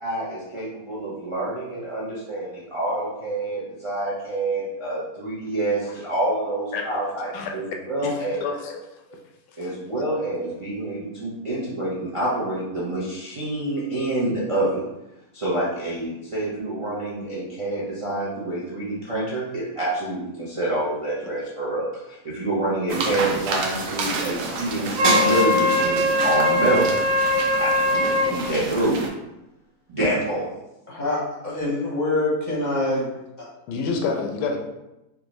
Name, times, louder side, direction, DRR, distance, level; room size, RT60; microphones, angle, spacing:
voice 1, 0.0-8.4 9.6-14.8 15.3-26.9 27.6-29.0 29.9-30.5, right 1 dB, 50° right, -8 dB, 0.3 m, -27 dB
voice 2, 6.7-7.5 8.0-8.1 8.4-8.8 9.6-9.7 26.6-26.8 33.7-34.6, left 4 dB, 85° left, 2 dB, 1.2 m, -28 dB
sound 1, 22.9-29.1, right 4 dB, 85° right, 1.2 m, -29 dB
Wind instrument woodwind instrument, 25.0-28.3, left 1 dB, 70° right, 0.8 m, -21 dB
voice 3, 30.9-33.1 33.4-33.5, left 2 dB, 35° left, -6 dB, 0.7 m, -25 dB
3.6 x 2.4 x 3.0 m, 0.93 s
omnidirectional pair, 1.8 m